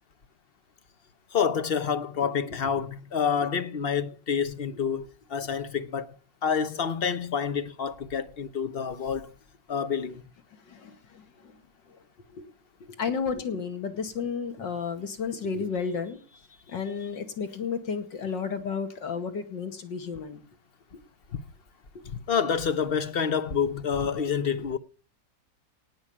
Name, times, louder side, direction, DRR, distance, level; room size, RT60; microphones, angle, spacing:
voice 1, 1.3-6.1 6.4-9.3 9.7-10.2 22.3-24.8, left 7 dB, 40° left, 0.9 m, -28 dB
voice 2, 2.2-2.6 10.7-11.5 12.3-12.4 13.0-16.4 16.7-20.4, left 6 dB, 80° left, 2.7 m, -32 dB
18.5 x 6.2 x 8.7 m
omnidirectional pair, 1.9 m